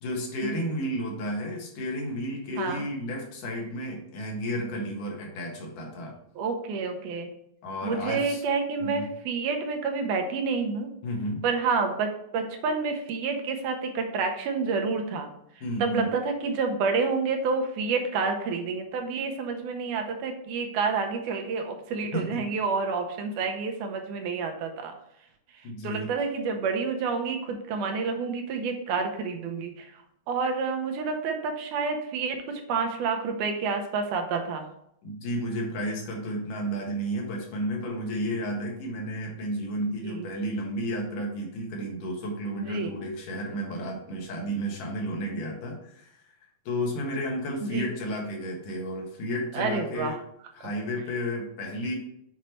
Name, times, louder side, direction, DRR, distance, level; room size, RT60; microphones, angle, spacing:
voice 1, 0.0-6.2 7.6-8.4 8.8-9.1 11.0-11.4 15.6-16.1 22.1-22.4 25.6-26.1 35.0-46.1 46.7-50.2 50.6-52.0, equal, 85° left, 0 dB, 3.0 m, -32 dB
voice 2, 6.4-7.3 7.8-10.9 11.4-15.3 15.8-24.9 25.8-30.0 30.3-34.7 39.8-40.3 42.6-42.9 47.6-47.9 49.5-50.2, right 4 dB, 80° right, 4 dB, 2.3 m, -29 dB
7.2 x 4.4 x 3.1 m, 0.75 s
omnidirectional pair, 3.6 m